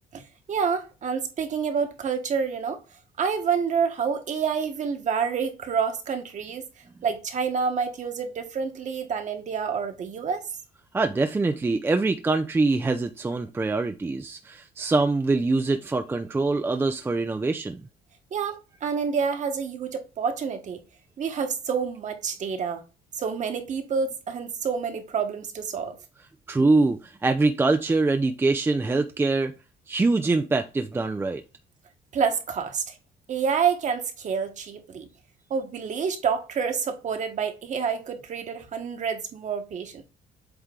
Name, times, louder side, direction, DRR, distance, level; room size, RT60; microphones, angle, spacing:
voice 1, 0.5-2.8 3.2-6.6 7.0-10.4 18.3-20.8 21.2-22.8 23.1-26.0 32.1-32.9 33.3-35.1 35.5-40.0, right 6 dB, 45° right, 1.3 m, -28 dB
voice 2, 10.9-17.8 26.5-29.5 29.9-31.4, right 3 dB, 15° right, 0.4 m, -24 dB
8.1 x 3.1 x 3.7 m
cardioid pair, 110°, 17 cm